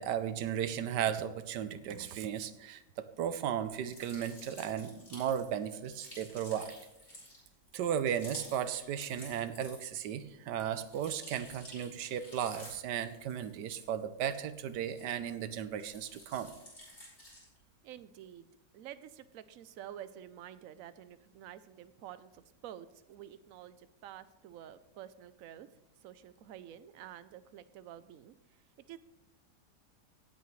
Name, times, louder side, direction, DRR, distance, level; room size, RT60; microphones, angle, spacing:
voice 1, 0.0-6.8 7.7-16.5, right 9 dB, 85° right, 13 dB, 1.3 m, -35 dB
sound 1, 3.6-10.1 10.4-15.3 15.7-17.6, left 1 dB, 35° left, 4.3 m, -53 dB
voice 2, 17.8-18.5 18.7-25.7 26.0-28.3 28.9-29.0, right 11 dB, 65° right, 14 dB, 0.9 m, -49 dB
17.5 x 8.4 x 3.2 m, 0.93 s
omnidirectional pair, 1.8 m